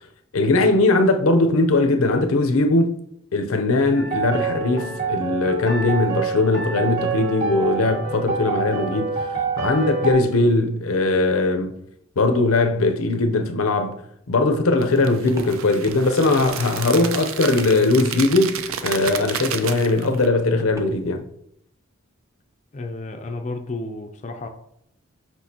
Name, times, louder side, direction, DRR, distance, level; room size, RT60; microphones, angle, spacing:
voice 1, 0.3-3.0 3.3-9.2 9.6-11.7 12.2-21.2, left 2 dB, 90° left, 0.7 m, -20 dB
sound 1, 3.9-10.1, right 4 dB, 45° right, 1.7 m, -26 dB
Walk footsteps, 14.7-21.2, equal, 15° right, 0.6 m, -40 dB
sound 2, 14.8-20.3, right 8 dB, 80° right, 0.5 m, -32 dB
voice 2, 22.7-24.5, left 2 dB, 35° left, 0.4 m, -32 dB
6.2 x 5.5 x 2.8 m
head